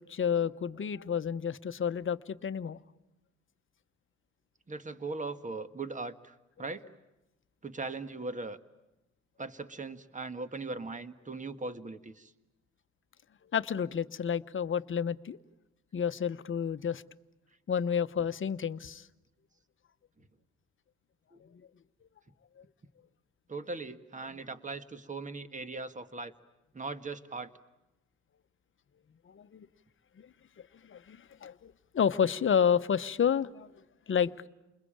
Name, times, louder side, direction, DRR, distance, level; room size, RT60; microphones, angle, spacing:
voice 1, 0.0-2.8 13.5-15.4 15.9-17.0 17.7-19.1 21.4-21.6 22.6-22.7 29.3-29.7 30.2-30.3 30.6-34.5, left 7 dB, 40° left, 13 dB, 1.0 m, -30 dB
voice 2, 4.7-6.9 7.6-8.6 9.4-12.3 21.3-21.4 23.5-26.3 26.7-27.5, right 3 dB, 25° right, 11 dB, 1.7 m, -39 dB
30.0 x 21.5 x 8.8 m, 0.99 s
cardioid pair, 90°, 30 cm